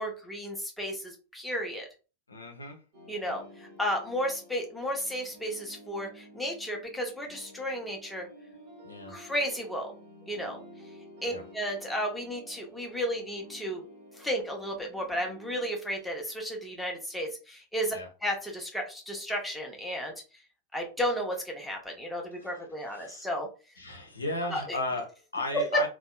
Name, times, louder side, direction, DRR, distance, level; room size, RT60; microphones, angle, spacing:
voice 1, 0.0-1.9 3.1-8.3 9.1-9.9 10.3-10.6 11.2-13.8 14.1-18.0 18.2-20.1 20.7-23.5 24.5-24.8 25.5-25.6, equal, 5° left, 0 dB, 0.7 m, -33 dB
voice 2, 2.3-2.8 8.8-9.1 11.3-11.4 17.9-18.1 22.4-22.5 22.8-23.3 23.8-25.9, left 2 dB, 75° left, 4 dB, 0.6 m, -35 dB
sound 1, 2.9-15.7, left 1 dB, 50° right, 1.0 m, -51 dB
2.6 x 2.1 x 2.2 m, 0.33 s
figure-of-eight pair, 90°, 0 cm